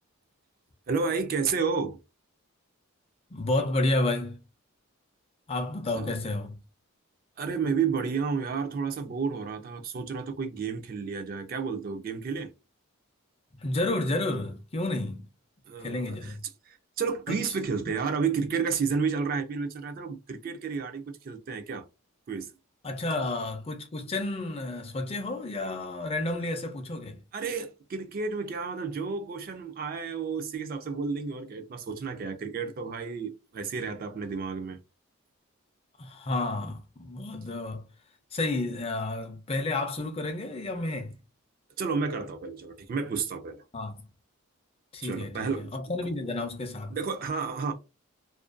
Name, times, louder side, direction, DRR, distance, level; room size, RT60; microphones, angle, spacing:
voice 1, 0.9-2.0 5.9-6.1 7.4-12.5 15.7-16.3 16.7-21.9 22.3-22.5 27.3-34.8 41.8-43.6 45.0-45.7 46.0-46.1 46.9-47.7, right 5 dB, 40° right, 0.3 m, -31 dB
voice 2, 3.3-4.4 5.5-6.6 13.6-15.2 15.8-16.4 17.3-17.4 22.8-27.2 36.0-37.9 38.3-41.2 43.7-43.9 44.9-47.0, left 2 dB, 25° left, 0.4 m, -31 dB
2.4 x 2.1 x 2.4 m
head